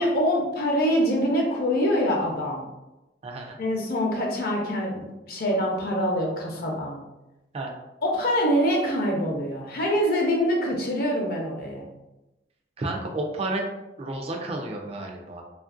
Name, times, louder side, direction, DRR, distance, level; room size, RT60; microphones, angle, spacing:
voice 1, 0.0-2.6 3.6-7.0 8.0-11.9, equal, 60° left, 0 dB, 0.6 m, -25 dB
voice 2, 3.2-3.6 7.5-7.7 12.8-13.7 14.0-15.4, right 2 dB, 35° right, 2 dB, 0.4 m, -31 dB
2.9 x 2.5 x 2.4 m, 0.98 s
head